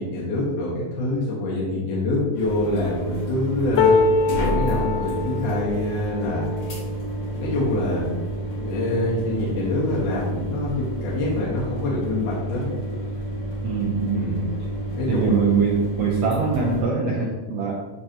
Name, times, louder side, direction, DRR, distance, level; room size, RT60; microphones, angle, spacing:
voice 1, 0.0-4.0 4.4-6.5 7.3-8.1 8.5-12.7 14.1-14.5 14.9-15.5, left 1 dB, 60° left, -6 dB, 3.0 m, -25 dB
sound 1, 2.3-16.8, right 1 dB, 45° left, 2.4 m, -30 dB
sound 2, 3.8-9.9 10.5-10.7 11.0-11.8 12.7-12.8, left 3 dB, 85° left, 2.5 m, -26 dB
voice 2, 13.6-14.3 15.1-17.9, right 5 dB, 80° right, -2 dB, 1.5 m, -23 dB
12.5 x 4.6 x 2.9 m, 1.4 s
omnidirectional pair, 4.1 m